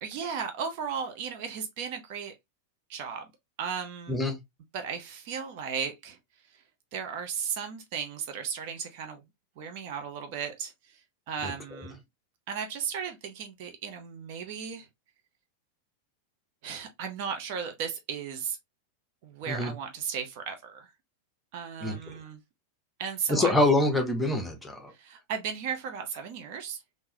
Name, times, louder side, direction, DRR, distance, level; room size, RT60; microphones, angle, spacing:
voice 1, 0.0-2.3 2.9-3.3 3.6-4.2 4.7-6.2 6.5-6.6 6.9-9.2 9.6-11.0 11.3-12.0 12.5-14.9 16.6-18.6 19.2-20.9 21.5-22.4 23.0-23.6 24.9-26.8, right 7 dB, 45° right, 0.7 m, -35 dB
voice 2, 23.3-24.9, left 2 dB, 5° left, 1.0 m, -25 dB
3.7 x 2.7 x 2.7 m
figure-of-eight pair, 90°, 0 cm